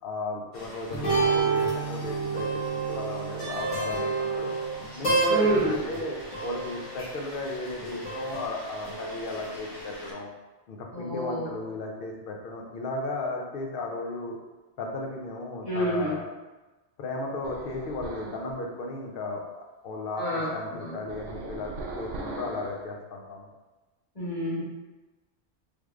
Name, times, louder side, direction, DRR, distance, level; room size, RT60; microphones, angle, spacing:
voice 1, 0.0-4.5 4.9-10.3 10.7-14.4 14.8-16.2 17.0-23.5, left 2 dB, 60° left, 0 dB, 0.7 m, -35 dB
sound 1, 0.5-10.1, right 3 dB, 80° left, 1.4 m, -30 dB
voice 2, 5.3-5.8 10.9-11.5 15.6-16.2 20.2-20.5 20.8-20.9 24.1-24.6, equal, 30° left, -9 dB, 1.4 m, -27 dB
sound 2, 17.4-18.5 21.1-22.8, right 2 dB, 70° right, 0.8 m, -39 dB
3.5 x 3.1 x 2.4 m, 1.1 s
omnidirectional pair, 1.2 m